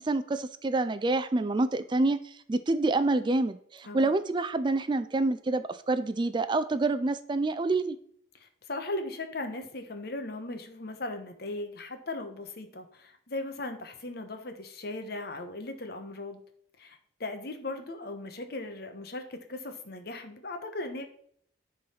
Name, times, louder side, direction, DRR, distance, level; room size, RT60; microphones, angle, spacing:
voice 1, 0.0-8.0, right 2 dB, 25° right, 12 dB, 0.4 m, -27 dB
voice 2, 8.3-16.4 16.8-21.0, left 2 dB, 55° left, 7 dB, 1.1 m, -38 dB
10.5 x 3.9 x 5.7 m, 0.64 s
head